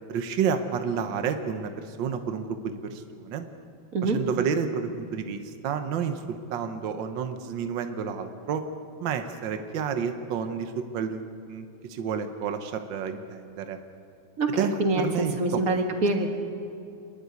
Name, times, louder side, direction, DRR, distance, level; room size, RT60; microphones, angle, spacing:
voice 1, 0.1-3.4 4.0-8.6 9.0-13.8 14.6-15.6, right 6 dB, 75° right, 7 dB, 1.6 m, -30 dB
voice 2, 14.4-16.3, right 2 dB, 45° right, 5 dB, 2.0 m, -25 dB
27.0 x 11.0 x 9.4 m, 2.5 s
omnidirectional pair, 2.1 m